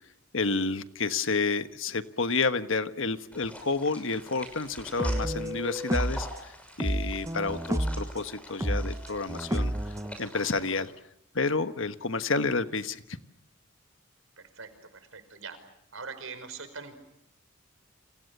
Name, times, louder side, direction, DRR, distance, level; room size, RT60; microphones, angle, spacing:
voice 1, 0.3-9.7 10.2-10.9 11.3-13.0, left 3 dB, 60° left, 10 dB, 1.4 m, -30 dB
sound 1, 3.3-10.8, equal, 5° left, 6.3 m, -46 dB
sound 2, 5.0-6.3 6.8-8.1 8.6-10.2, equal, 15° right, 1.0 m, -30 dB
voice 2, 14.4-15.6 15.9-17.0, right 5 dB, 65° right, 10 dB, 5.2 m, -42 dB
30.0 x 27.5 x 6.8 m, 0.78 s
head